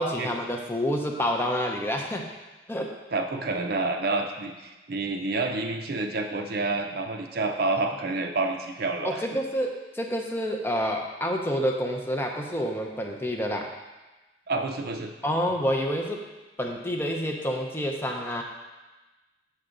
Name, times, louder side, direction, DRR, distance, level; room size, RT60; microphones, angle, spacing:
voice 1, 0.0-2.3 2.7-2.9 9.0-13.7 15.2-16.2 16.6-18.4, equal, 10° left, 1 dB, 0.5 m, -28 dB
voice 2, 3.1-9.2 14.5-15.1, right 3 dB, 55° right, 4 dB, 0.6 m, -28 dB
6.5 x 5.8 x 3.7 m, 1.1 s
head